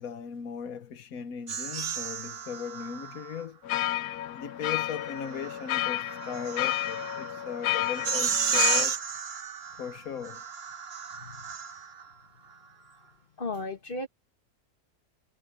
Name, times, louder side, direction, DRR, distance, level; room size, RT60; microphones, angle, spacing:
voice 1, 0.0-3.6 4.3-9.0 9.8-10.4, left 7 dB, 65° left, 1.4 m, -38 dB
sound 1, 1.5-3.4 4.9-12.1, right 7 dB, 45° right, 1.1 m, -33 dB
sound 2, 3.6-8.9, left 14 dB, 90° left, 1.1 m, -31 dB
voice 2, 11.1-11.6 13.4-14.1, left 2 dB, 35° left, 1.9 m, -35 dB
omnidirectional pair, 1.6 m